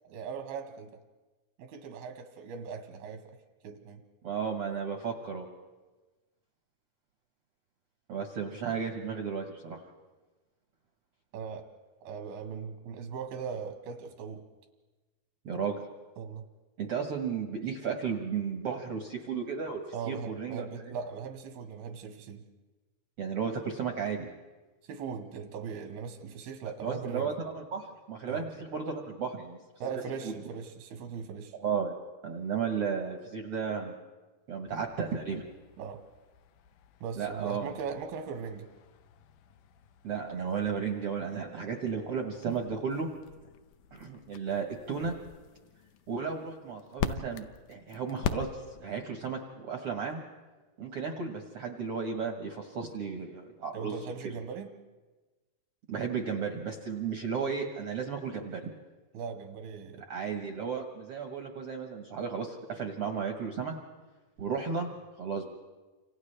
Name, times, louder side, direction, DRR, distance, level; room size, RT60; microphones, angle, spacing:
voice 1, 0.0-1.0 1.6-3.4 3.6-4.0 11.3-11.7 12.0-14.4 16.2-16.4 19.9-22.4 24.9-27.3 28.3-28.5 29.8-31.5 35.8-36.0 37.0-38.7 53.7-54.7 59.1-60.0, right 6 dB, 85° right, 5 dB, 3.1 m, -39 dB
voice 2, 4.2-5.5 8.1-9.8 15.4-15.8 16.8-20.9 23.2-24.3 26.8-29.6 30.2-30.3 31.6-31.9 32.2-33.9 34.5-35.4 37.1-37.8 40.0-43.1 43.9-45.1 46.1-50.2 50.8-53.9 54.2-54.3 55.9-58.7 60.0-63.7 64.4-65.5, right 6 dB, 70° right, 3 dB, 1.4 m, -34 dB
sound 1, 34.7-49.0, left 7 dB, 75° left, 2.1 m, -43 dB
30.0 x 26.5 x 3.3 m, 1.2 s
omnidirectional pair, 4.3 m